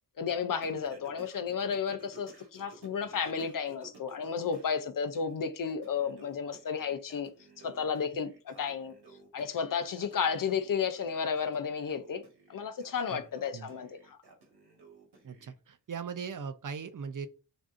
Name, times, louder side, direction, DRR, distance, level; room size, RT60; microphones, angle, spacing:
voice 1, 0.2-7.3 7.6-8.9 9.3-12.2 12.5-14.2, left 6 dB, 55° left, 0.5 m, -33 dB
Singing, 0.6-4.7 5.1-15.5, right 3 dB, 85° right, 1.3 m, -56 dB
voice 2, 15.2-17.3, right 6 dB, 55° right, 0.5 m, -39 dB
6.1 x 2.6 x 2.5 m
wide cardioid pair, 135°, 39 cm